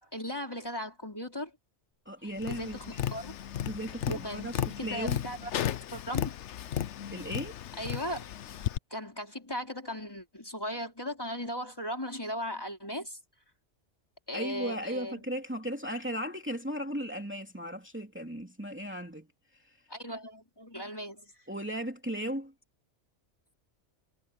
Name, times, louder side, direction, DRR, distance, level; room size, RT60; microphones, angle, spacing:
voice 1, 0.1-1.5 2.2-3.3 4.1-6.3 7.8-8.3 8.9-13.2 14.3-15.2 19.9-21.3, equal, 20° left, 4.1 m, -38 dB
voice 2, 2.1-3.1 3.6-5.2 7.1-7.6 14.3-19.3 21.5-22.5, equal, 10° right, 3.0 m, -36 dB
Tap, 2.4-8.8, left 10 dB, 75° left, 1.0 m, -35 dB
omnidirectional pair, 1.2 m